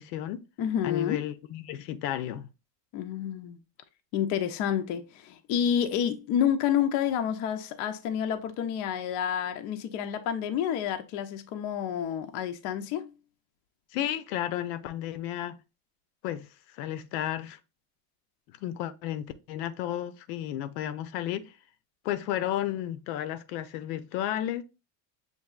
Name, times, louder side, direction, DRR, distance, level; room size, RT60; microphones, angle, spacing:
voice 1, 0.0-0.4 0.8-2.5 13.9-15.6 16.2-16.5 16.7-17.6 18.5-21.5 22.0-24.6, left 12 dB, 90° left, 0.7 m, -33 dB
voice 2, 0.6-1.3 2.9-3.6 4.1-13.1, left 9 dB, 40° left, 0.4 m, -29 dB
6.6 x 2.6 x 2.3 m
cardioid pair, 165°, 47 cm